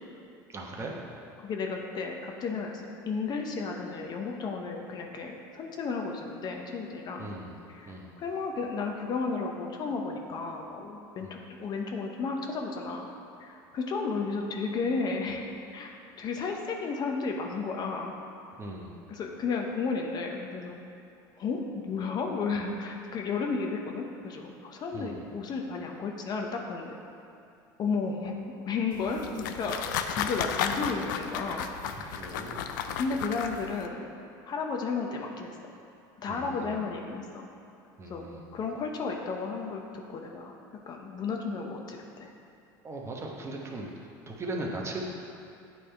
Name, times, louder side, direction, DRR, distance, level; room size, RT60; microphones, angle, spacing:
voice 1, 0.5-0.9 7.2-8.1 11.2-11.3 18.6-19.0 24.9-25.2 32.1-32.6 36.3-36.7 38.0-38.4 42.8-43.9 44.3-45.0, right 2 dB, 25° right, -1 dB, 1.0 m, -38 dB
voice 2, 1.4-7.3 7.7-13.1 13.4-15.5 15.7-18.1 19.1-20.8 21.4-26.9 27.8-32.2 33.0-34.2 34.5-35.5 36.2-37.5 38.1-38.3 38.5-39.8 40.1-40.5 40.9-42.3, left 4 dB, 40° left, 2 dB, 0.7 m, -33 dB
sound 1, 28.9-33.9, left 8 dB, 85° left, 0.4 m, -34 dB
8.6 x 3.4 x 4.4 m, 2.6 s
supercardioid pair, 100°, 10 cm